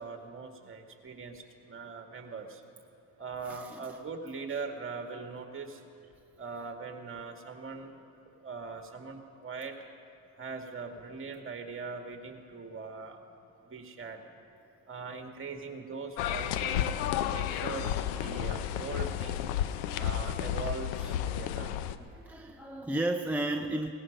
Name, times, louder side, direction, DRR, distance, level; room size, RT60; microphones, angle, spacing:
voice 1, 0.0-2.6 3.2-5.8 6.4-7.9 8.4-9.8 10.4-13.2 13.6-14.2 14.9-16.9 17.3-19.5 19.9-21.7, right 4 dB, 30° right, 4 dB, 2.0 m, -41 dB
voice 2, 3.5-3.8 22.1-23.9, right 1 dB, 5° right, 3 dB, 0.5 m, -33 dB
sound 1, 16.2-22.0, left 10 dB, 90° left, 0.7 m, -32 dB
18.5 x 14.5 x 5.3 m, 2.6 s
supercardioid pair, 85°, 44 cm